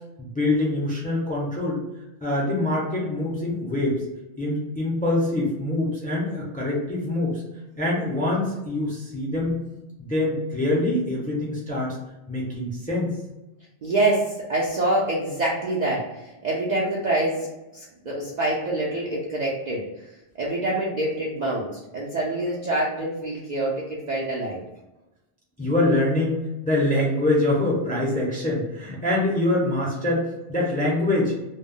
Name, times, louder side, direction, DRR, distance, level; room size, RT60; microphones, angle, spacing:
voice 1, 0.2-1.8 2.2-4.0 4.4-7.4 7.8-9.6 10.0-12.0 12.3-13.1 25.6-31.3, left 1 dB, 10° left, -4 dB, 0.5 m, -24 dB
voice 2, 13.8-20.1 20.4-24.7, right 2 dB, 55° right, -5 dB, 0.5 m, -26 dB
2.2 x 2.0 x 3.6 m, 0.99 s
omnidirectional pair, 1.2 m